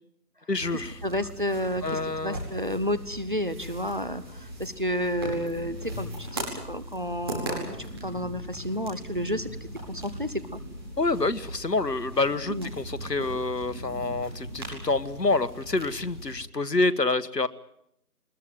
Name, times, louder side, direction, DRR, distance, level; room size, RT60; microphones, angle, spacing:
voice 1, 0.5-1.0 1.8-2.4 11.0-17.5, left 3 dB, 80° left, 14 dB, 1.5 m, -27 dB
sound 1, 0.6-16.4, right 1 dB, 15° right, 5.1 m, -39 dB
voice 2, 1.0-4.2 4.6-9.5 9.9-10.6 12.5-12.7, equal, 30° right, 13 dB, 1.2 m, -31 dB
22.5 x 20.5 x 9.3 m, 0.76 s
figure-of-eight pair, 170°, 48 cm